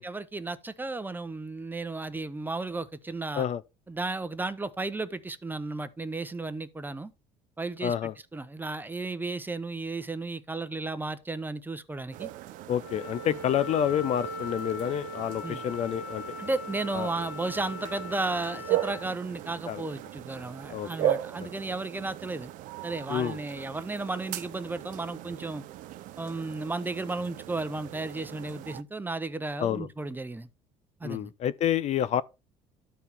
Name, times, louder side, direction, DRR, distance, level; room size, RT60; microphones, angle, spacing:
voice 1, 0.0-3.5 3.9-7.1 7.6-7.9 8.3-12.3 13.2-13.4 15.4-15.6 16.4-22.5 22.8-25.6 26.2-30.5 31.0-31.3, right 3 dB, 15° right, 0.7 m, -34 dB
voice 2, 7.8-8.1 12.7-16.3 16.9-17.1 19.7-19.8 20.7-21.1 21.4-21.5 23.1-23.4 29.6-29.9 31.0-32.2, left 10 dB, 50° left, 0.5 m, -29 dB
sound 1, 12.1-28.8, right 12 dB, 65° right, 0.5 m, -37 dB
Wind instrument woodwind instrument, 12.8-19.1, left 2 dB, 80° left, 2.3 m, -40 dB
12.0 x 4.6 x 3.4 m
supercardioid pair, 90°, 15 cm